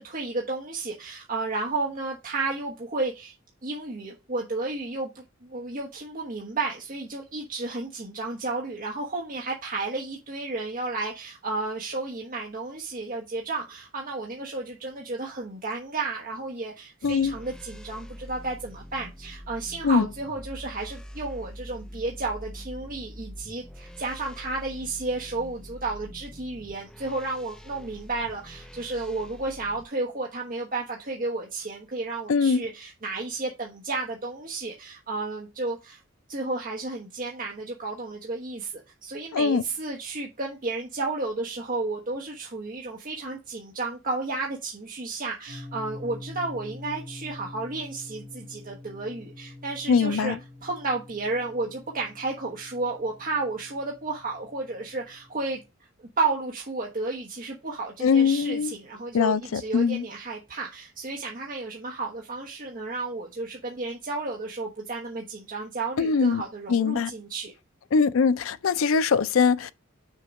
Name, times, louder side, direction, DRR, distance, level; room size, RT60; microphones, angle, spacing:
voice 1, 0.0-3.3 3.6-36.0 36.3-50.3 50.6-55.6 56.2-67.5, right 3 dB, 45° right, 1.1 m, -32 dB
voice 2, 17.0-17.4 19.8-20.1 32.3-32.6 39.3-39.6 49.9-50.4 58.0-58.8 59.1-60.1 66.0-66.4 66.7-67.1 67.9-69.7, left 5 dB, 75° left, 0.4 m, -22 dB
sound 1, 17.0-29.8, equal, 5° left, 0.5 m, -44 dB
sound 2, 45.5-55.6, left 2 dB, 65° right, 2.6 m, -45 dB
6.5 x 3.7 x 5.2 m
head